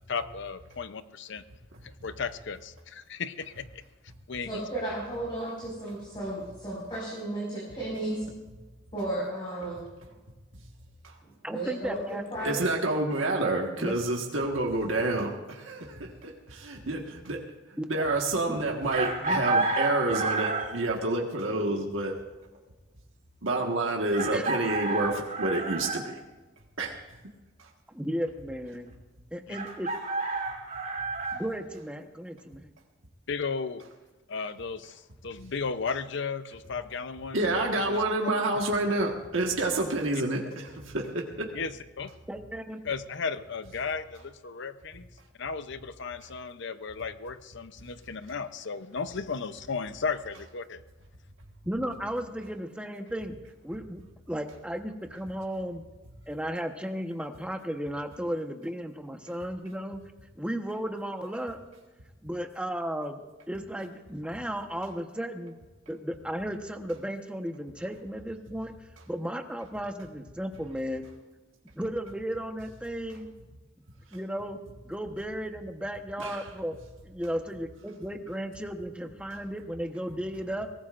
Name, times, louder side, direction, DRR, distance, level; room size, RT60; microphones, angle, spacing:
voice 1, 0.1-1.4 1.8-3.8 4.3-4.7 29.5-29.6 33.3-33.8 34.3-38.3 40.1-40.2 41.5-42.1 42.8-45.1 45.4-50.8, left 5 dB, 65° left, 12 dB, 0.7 m, -35 dB
voice 2, 4.5-8.2 8.9-9.8 11.2-12.6, right 1 dB, 25° left, -6 dB, 5.2 m, -34 dB
voice 3, 11.4-12.2 13.8-13.9 17.8-18.1 18.5-18.6 19.2-19.4 24.3-24.4 27.9-28.9 29.3-29.9 31.3-32.7 42.3-42.8 51.6-53.4 53.6-54.0 54.3-55.9 56.3-60.0 60.4-61.6 62.2-63.2 63.5-65.5 65.9-71.1 71.8-73.3 74.1-74.6 74.8-76.7 77.0-80.7, equal, 5° right, 4 dB, 1.1 m, -34 dB
voice 4, 12.4-17.4 17.9-22.1 23.4-26.2 26.8-26.9 27.6-27.7 37.3-41.5 76.2-76.5, right 2 dB, 80° right, 0 dB, 1.6 m, -28 dB
Chicken rooster, 18.9-20.9 22.5-22.6 24.1-26.0 29.5-31.4, right 3 dB, 45° right, 2.8 m, -30 dB
22.5 x 18.5 x 2.6 m, 1.2 s
head